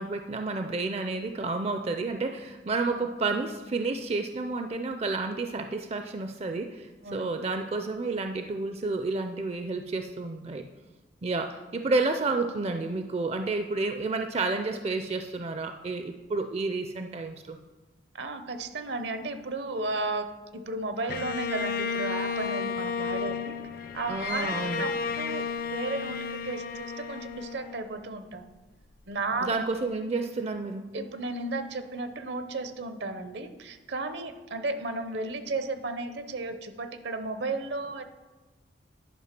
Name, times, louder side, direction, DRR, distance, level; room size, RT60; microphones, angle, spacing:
voice 1, 0.0-10.7 11.2-17.6 24.1-24.8 29.4-30.9, right 3 dB, 35° right, 7 dB, 0.4 m, -30 dB
voice 2, 18.1-23.6 23.9-25.4 25.7-28.5 29.1-29.5 30.9-38.0, right 3 dB, 70° right, 9 dB, 0.8 m, -34 dB
Bowed string instrument, 21.1-28.3, left 5 dB, 55° left, 0.5 m, -33 dB
10.5 x 5.5 x 5.9 m, 1.2 s
head